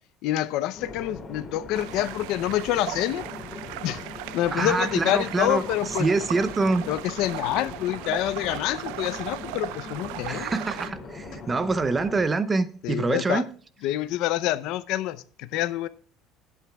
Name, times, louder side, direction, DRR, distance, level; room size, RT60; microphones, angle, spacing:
voice 1, 0.2-3.2 3.8-4.0 4.3-6.1 6.9-10.5 12.8-13.4 13.8-15.9, left 14 dB, 55° left, 0.6 m, -27 dB
sound 1, 0.7-12.2, left 3 dB, 20° left, 2.7 m, -40 dB
sound 2, 1.7-10.9, right 16 dB, 85° right, 0.5 m, -37 dB
voice 2, 4.5-5.6 6.0-6.8 10.3-13.4, right 3 dB, 15° right, 0.6 m, -25 dB
18.0 x 9.0 x 2.3 m
cardioid pair, 175°, 0 cm